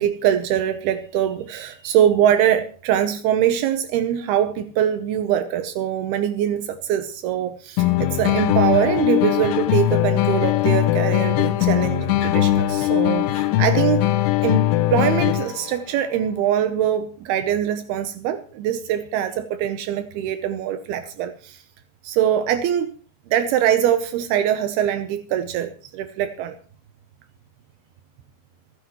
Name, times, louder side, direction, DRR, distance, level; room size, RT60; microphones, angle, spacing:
voice 1, 0.0-14.0 14.4-21.6 22.0-22.9 23.3-26.6, right 10 dB, 90° right, 9 dB, 2.2 m, -23 dB
sound 1, 7.8-15.7, left 14 dB, 75° left, 2.8 m, -20 dB
27.5 x 9.8 x 3.1 m, 0.40 s
omnidirectional pair, 5.7 m